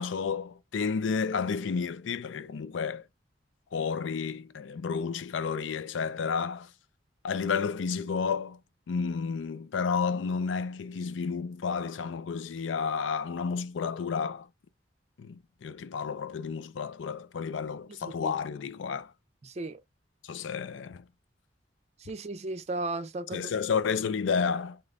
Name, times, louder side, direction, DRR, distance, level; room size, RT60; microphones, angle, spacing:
voice 1, 0.0-3.1 3.7-6.7 7.2-8.6 8.9-14.5 15.2-19.1 20.2-21.1 23.3-24.8, left 5 dB, 90° left, 0.4 m, -31 dB
voice 2, 18.0-18.3 19.4-19.8 22.0-23.5, right 2 dB, 35° right, 0.5 m, -35 dB
3.3 x 2.9 x 2.4 m
head